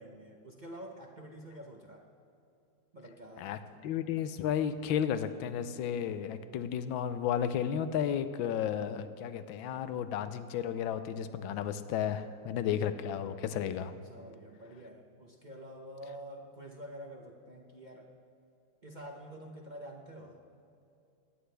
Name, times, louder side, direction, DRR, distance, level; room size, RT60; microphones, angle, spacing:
voice 1, 0.0-2.0 2.9-3.9 12.5-12.8 14.0-18.1 18.8-20.5, right 1 dB, 40° right, 0 dB, 0.6 m, -48 dB
voice 2, 3.4-13.9, left 9 dB, 80° left, 11 dB, 1.4 m, -33 dB
22.5 x 9.6 x 3.4 m, 2.6 s
omnidirectional pair, 2.2 m